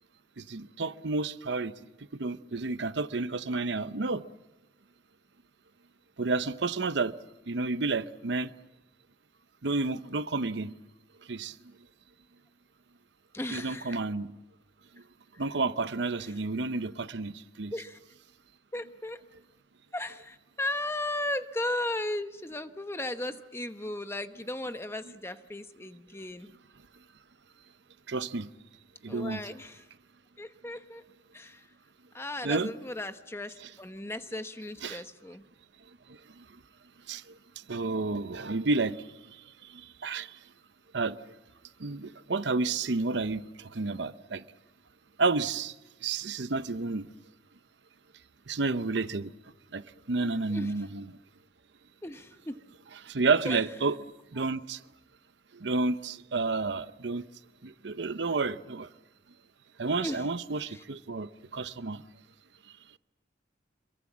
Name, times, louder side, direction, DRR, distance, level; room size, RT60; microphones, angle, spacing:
voice 1, 0.4-1.7 2.2-4.2 6.2-7.1 7.5-8.5 9.6-10.7 11.3-11.5 13.5-14.3 15.4-17.7 28.1-28.5 29.0-29.4 32.4-32.7 34.8-35.0 37.1-37.2 37.7-39.0 40.0-40.3 40.9-41.2 41.8-44.4 45.2-45.7 46.0-47.1 48.5-49.3 49.7-51.0 53.0-54.0 54.3-54.8 55.5-57.2 57.6-58.9 59.8-62.0, right 3 dB, 70° right, 0.8 m, -30 dB
voice 2, 13.3-14.0 15.0-15.1 15.3-15.4 16.2-16.4 17.7-18.0 18.7-19.2 19.9-26.5 29.1-29.9 30.4-31.0 31.3-31.7 32.1-35.4 50.5-50.7 52.0-52.6 53.4-53.6 54.4-54.5 60.0-60.3 60.7-60.8, left 1 dB, 15° left, 1.0 m, -36 dB
27.0 x 23.0 x 7.4 m
head